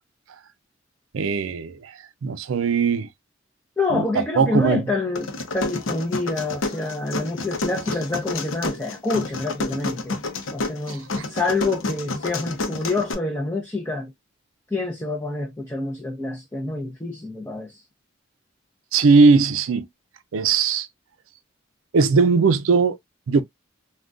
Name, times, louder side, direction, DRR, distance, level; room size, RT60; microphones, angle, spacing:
voice 1, 1.1-1.9 2.2-3.1 3.9-4.8 10.9-11.2 18.9-19.9 20.3-20.9 21.9-23.0 23.3-23.4, right 4 dB, 90° right, 0.4 m, -19 dB
voice 2, 3.8-10.2 10.5-14.1 14.7-17.8, left 3 dB, 15° left, 0.5 m, -27 dB
sound 1, 5.2-13.1, left 2 dB, 80° left, 0.7 m, -29 dB
3.6 x 2.3 x 2.4 m
head